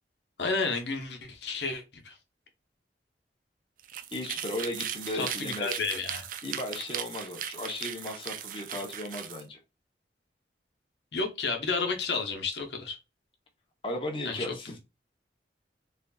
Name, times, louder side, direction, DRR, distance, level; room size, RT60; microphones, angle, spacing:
voice 1, 0.4-2.2 5.1-6.3 11.1-13.0 14.2-14.5, left 4 dB, 80° left, 4 dB, 1.0 m, -31 dB
sound 1, 3.8-9.4, right 9 dB, 50° right, 0.4 m, -38 dB
voice 2, 4.1-5.8 6.4-9.6 13.8-14.8, left 1 dB, 30° left, 2 dB, 0.8 m, -36 dB
4.0 x 3.3 x 2.3 m, 0.26 s
head